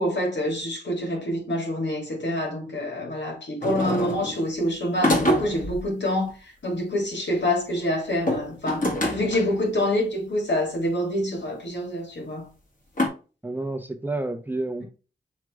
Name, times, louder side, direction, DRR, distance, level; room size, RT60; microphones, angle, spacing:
voice 1, 0.0-12.5, left 1 dB, 80° left, 3.1 m, -26 dB
sound 1, 3.6-4.4 5.0-5.8 8.1-9.5 10.5-10.6 11.4-11.5 13.0-13.1, left 1 dB, 45° left, 2.2 m, -25 dB
voice 2, 13.4-14.8, right 2 dB, 10° right, 0.9 m, -29 dB
6.3 x 3.2 x 4.7 m
wide cardioid pair, 75°, 18 cm